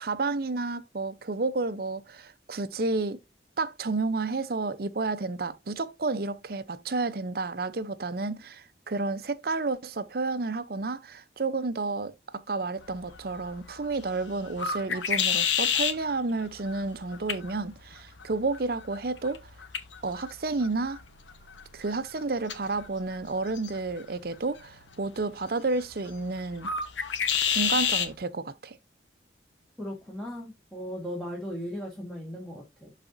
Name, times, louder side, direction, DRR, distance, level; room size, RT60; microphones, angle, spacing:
voice 1, 0.0-3.2 3.6-19.5 20.0-21.0 21.7-26.7 27.5-28.8, right 3 dB, 55° right, 0.6 m, -31 dB
sound 1, 12.8-28.1, left 7 dB, 85° left, 1.1 m, -33 dB
voice 2, 29.8-32.9, equal, 5° left, 1.7 m, -37 dB
12.0 x 4.1 x 2.6 m
head